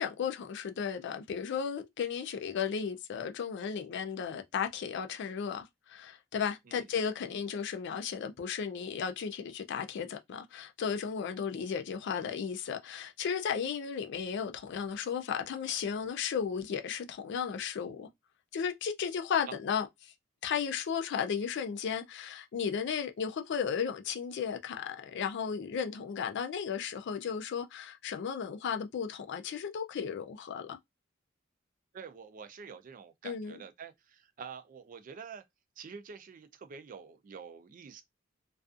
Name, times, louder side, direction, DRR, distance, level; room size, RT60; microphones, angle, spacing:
voice 1, 0.0-18.1 18.5-20.1 20.4-30.8 33.2-33.6, left 7 dB, 60° left, 0.4 m, -34 dB
voice 2, 31.9-35.4 35.8-38.0, right 6 dB, 40° right, 0.4 m, -47 dB
2.4 x 2.4 x 2.4 m
head